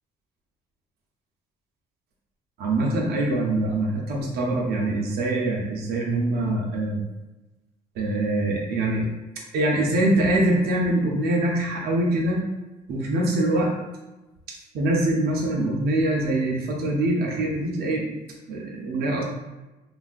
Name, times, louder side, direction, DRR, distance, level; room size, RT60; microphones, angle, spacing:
voice 1, 2.6-7.0 8.0-9.1 9.5-12.4 12.9-13.7 14.7-18.0 18.5-19.2, right 1 dB, 70° right, -2 dB, 0.6 m, -24 dB
3.3 x 2.3 x 2.4 m, 1.1 s
cardioid pair, 110°, 17 cm